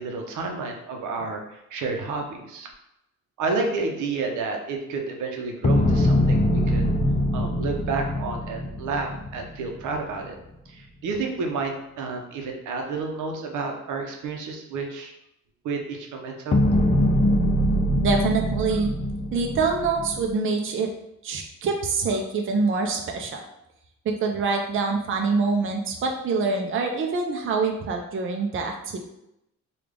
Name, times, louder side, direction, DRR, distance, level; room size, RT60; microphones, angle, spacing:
voice 1, 0.0-2.7 3.4-6.9 7.3-10.3 10.7-15.1 15.6-16.6, right 4 dB, 80° right, 2 dB, 0.7 m, -30 dB
sound 1, 5.6-9.9 16.5-20.3, left 1 dB, 25° left, 0.4 m, -23 dB
voice 2, 18.0-18.9 19.3-20.9 21.2-23.4 24.1-29.0, right 4 dB, 45° right, 2 dB, 0.5 m, -25 dB
3.3 x 2.4 x 3.6 m, 0.84 s
cardioid pair, 90°, 30 cm